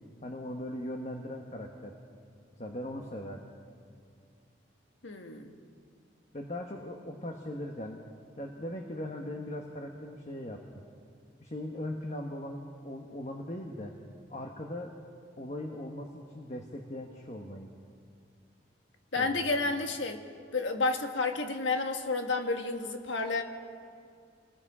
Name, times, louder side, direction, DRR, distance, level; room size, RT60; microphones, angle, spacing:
voice 1, 0.2-1.9 2.6-3.4 6.3-8.0 8.4-10.8 11.4-13.9 14.3-15.0 15.4-17.7 19.2-19.4, left 1 dB, 35° left, 2 dB, 1.3 m, -39 dB
voice 2, 5.0-5.5 19.1-20.2 20.5-23.4, left 3 dB, 85° left, 5 dB, 1.7 m, -30 dB
28.5 x 20.5 x 4.9 m, 2.2 s
head